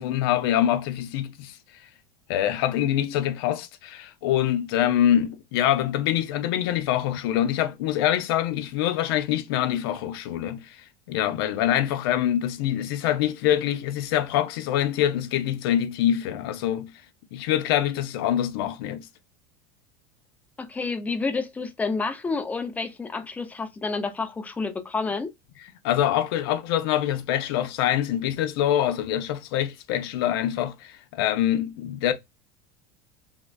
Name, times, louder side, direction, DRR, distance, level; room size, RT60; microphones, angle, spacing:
voice 1, 0.0-1.6 2.3-10.8 11.1-16.9 17.3-19.1 25.8-32.1, left 11 dB, 80° left, 0.7 m, -25 dB
voice 2, 20.6-25.3, left 4 dB, 10° left, 0.5 m, -29 dB
3.7 x 2.1 x 2.2 m
supercardioid pair, 140°, 12 cm